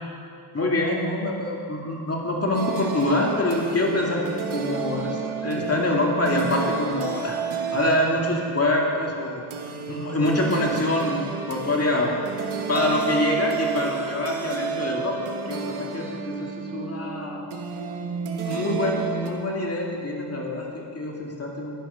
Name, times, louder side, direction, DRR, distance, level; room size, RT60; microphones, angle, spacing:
voice 1, 0.5-4.2 4.5-7.4 7.7-9.4 9.9-11.2 11.5-12.1 12.7-15.1 15.5-17.5 18.4-21.9, left 1 dB, 30° left, -1 dB, 2.4 m, -25 dB
sound 1, 2.5-19.3, right 6 dB, 75° right, 1.4 m, -31 dB
11.5 x 11.0 x 5.6 m, 2.4 s
cardioid pair, 85°, 49 cm